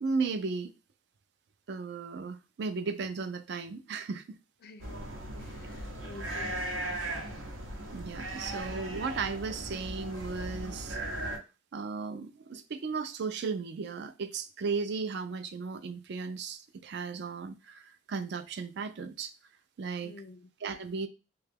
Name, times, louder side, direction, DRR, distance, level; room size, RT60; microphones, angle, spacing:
voice 1, 0.0-0.7 1.7-4.4 7.9-11.0 11.7-19.3 19.8-20.1 20.6-21.1, right 4 dB, 55° right, 0.3 m, -35 dB
voice 2, 4.6-5.0 5.4-7.2 8.4-8.5 20.0-20.5, left 4 dB, 50° left, 0.3 m, -50 dB
sound 1, 4.8-11.4, right 1 dB, 75° right, 0.7 m, -38 dB
2.9 x 2.3 x 3.4 m
head